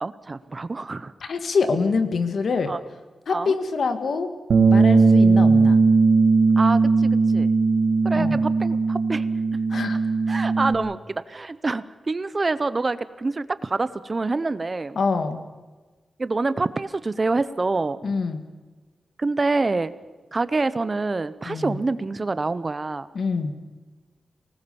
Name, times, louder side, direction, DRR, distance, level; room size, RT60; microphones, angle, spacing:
voice 1, 0.0-1.1 2.7-2.8 3.3-3.5 6.6-7.5 8.0-9.3 10.3-15.0 16.2-18.1 19.2-19.9 20.3-23.1, right 3 dB, 30° right, 15 dB, 0.7 m, -26 dB
voice 2, 1.2-2.7 3.3-4.3 4.7-5.8 8.1-8.4 9.7-10.0 15.0-15.4 18.0-18.5 21.5-21.8 23.2-23.6, left 4 dB, 65° left, 9 dB, 1.9 m, -25 dB
Bass guitar, 4.5-10.7, right 4 dB, 80° right, 2.1 m, -18 dB
24.5 x 19.5 x 7.1 m, 1.3 s
wide cardioid pair, 155°, 0 cm